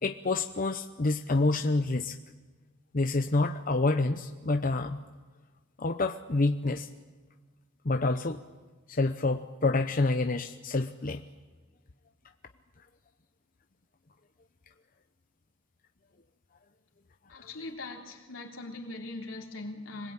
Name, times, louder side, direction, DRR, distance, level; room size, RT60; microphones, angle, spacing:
voice 1, 0.0-2.2 2.9-5.0 5.8-6.9 7.8-8.4 8.9-11.2 17.3-17.5, left 2 dB, 45° left, 7 dB, 0.8 m, -28 dB
voice 2, 17.3-20.1, left 2 dB, 85° left, 2 dB, 3.5 m, -41 dB
26.0 x 20.5 x 8.8 m, 1.3 s
head